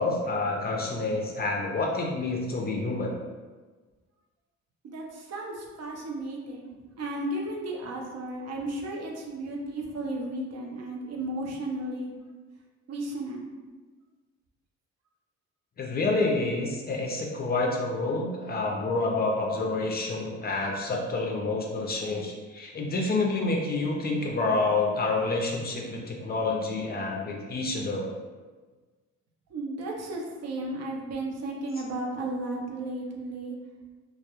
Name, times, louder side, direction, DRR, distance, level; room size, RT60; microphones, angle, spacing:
voice 1, 0.0-3.1 15.8-28.1, left 3 dB, 35° left, 0 dB, 0.4 m, -28 dB
voice 2, 4.8-12.1 12.9-13.5 29.5-33.6, right 1 dB, 55° right, -1 dB, 0.5 m, -34 dB
2.2 x 2.0 x 2.9 m, 1.4 s
cardioid pair, 90°, 30 cm